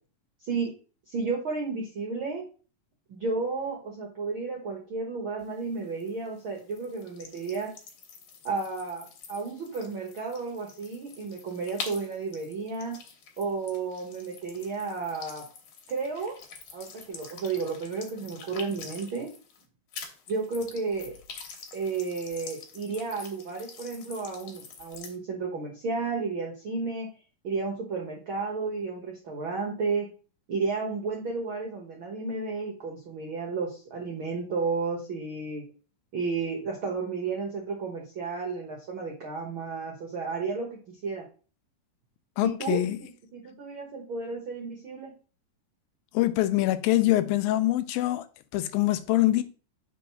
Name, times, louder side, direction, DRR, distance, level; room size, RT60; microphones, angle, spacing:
voice 1, 0.4-0.7 1.1-2.4 3.1-7.7 8.4-13.0 13.4-15.5 15.9-16.3 16.7-19.3 20.3-21.2 21.7-27.1 27.4-30.1 30.5-35.6 36.1-41.2 42.4-45.1, right 4 dB, 60° right, 1.4 m, -32 dB
sound 1, 5.4-19.6 19.9-25.2, left 5 dB, 65° left, 2.4 m, -46 dB
voice 2, 42.4-43.0 46.1-48.3 48.5-49.4, left 15 dB, 90° left, 2.4 m, -24 dB
5.1 x 4.7 x 5.7 m
omnidirectional pair, 4.0 m